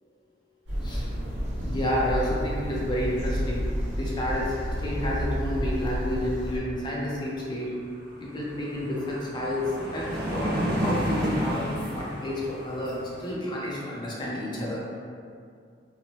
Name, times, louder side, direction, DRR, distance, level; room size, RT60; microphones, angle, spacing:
sound 1, 0.7-6.6, equal, 80° right, 1.0 m, -30 dB
voice 1, 1.6-4.5 4.8-7.7 8.2-14.8, left 1 dB, 25° left, -5 dB, 0.4 m, -30 dB
sound 2, 7.2-7.3 7.6-13.3, equal, 60° right, 0.5 m, -31 dB
2.8 x 2.0 x 3.0 m, 2.3 s
head